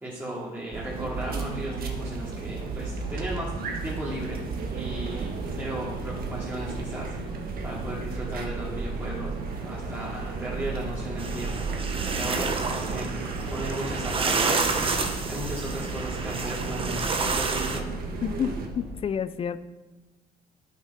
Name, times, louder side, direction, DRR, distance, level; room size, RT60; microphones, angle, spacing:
voice 1, 0.0-3.5 3.8-4.4 4.7-9.3 9.6-11.7 12.1-13.1 13.5-15.0 15.3-17.9, right 1 dB, 10° right, -6 dB, 2.5 m, -36 dB
sound 1, 0.7-18.7, right 4 dB, 60° right, 1.6 m, -34 dB
sound 2, 2.1-18.9, right 2 dB, 85° right, 2.5 m, -41 dB
sound 3, 11.2-17.8, right 4 dB, 30° right, 1.1 m, -29 dB
voice 2, 18.2-19.6, left 7 dB, 35° left, 14 dB, 0.5 m, -29 dB
9.6 x 7.4 x 5.6 m, 1.2 s
cardioid pair, 110°, 17 cm